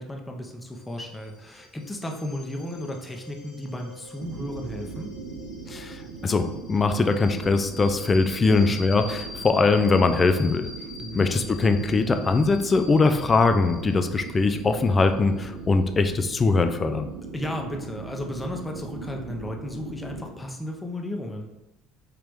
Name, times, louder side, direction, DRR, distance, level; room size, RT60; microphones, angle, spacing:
voice 1, 0.0-5.1 8.5-8.7 11.0-11.3 17.3-21.5, left 1 dB, 15° left, 2 dB, 0.9 m, -34 dB
sound 1, 0.7-17.0, left 2 dB, 60° left, 1.3 m, -45 dB
sound 2, 4.2-20.2, right 4 dB, 75° right, 0.6 m, -39 dB
voice 2, 5.7-10.7 11.1-17.1, left 3 dB, 30° left, 8 dB, 0.5 m, -22 dB
5.1 x 2.9 x 3.6 m, 0.97 s
hypercardioid pair, 65°, 0 cm